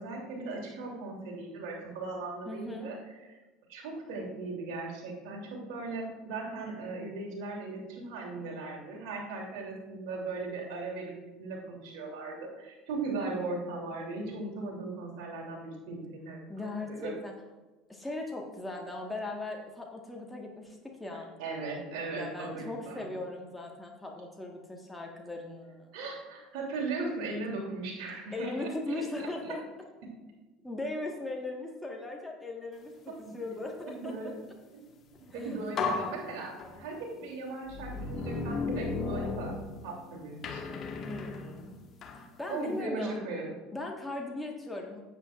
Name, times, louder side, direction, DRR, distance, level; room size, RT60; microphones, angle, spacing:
voice 1, 0.0-3.0 3.3-3.4 3.7-11.1 11.4-17.1 21.4-23.1 25.9-29.5 33.1-33.3 33.9-34.3 34.7-39.6 39.8-40.7 42.5-43.5, right 3 dB, 55° right, -2 dB, 3.0 m, -38 dB
voice 2, 2.5-2.9 16.5-17.3 17.9-21.3 22.1-25.9 28.3-29.6 30.6-34.1 35.3-35.6 41.0-41.8 42.2-43.2 43.7-45.0, left 2 dB, 5° left, 0 dB, 1.5 m, -38 dB
sound 1, 35.2-35.3 35.8-37.1 37.7-40.0 40.4-42.3, left 3 dB, 35° left, 1.5 m, -35 dB
16.0 x 8.2 x 2.5 m, 1.2 s
figure-of-eight pair, 65°, 0 cm